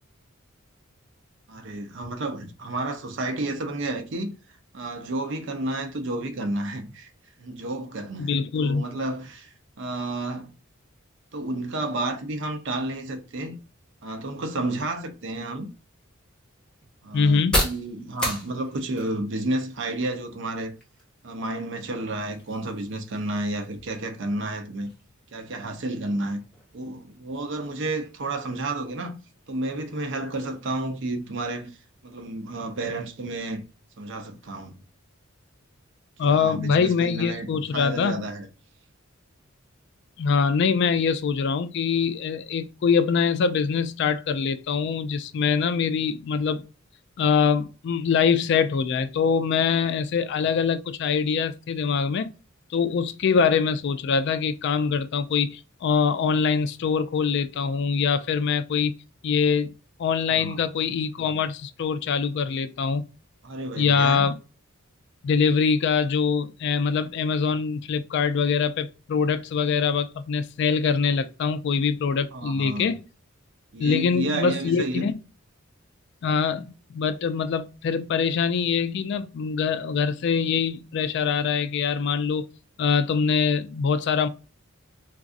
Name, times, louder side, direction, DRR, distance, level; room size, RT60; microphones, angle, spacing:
voice 1, 1.5-4.4 4.7-7.1 7.4-10.5 11.3-13.6 14.0-15.7 17.0-20.8 21.2-24.9 25.3-26.4 26.7-29.2 29.5-31.7 32.0-33.6 34.0-34.8 36.2-38.5 60.3-60.6 63.4-64.3 72.3-72.9 73.7-75.1, right 2 dB, 60° right, 0.6 m, -31 dB
voice 2, 8.2-8.8 17.1-17.6 36.2-38.2 40.2-46.6 47.2-52.3 52.7-58.9 59.2-59.7 60.0-63.0 63.8-64.3 65.2-73.0 73.8-75.1 76.2-82.4 82.8-84.3, left 6 dB, 55° left, 0.3 m, -24 dB
sound 1, 15.4-33.0, equal, 5° left, 1.1 m, -38 dB
3.9 x 2.4 x 2.4 m
head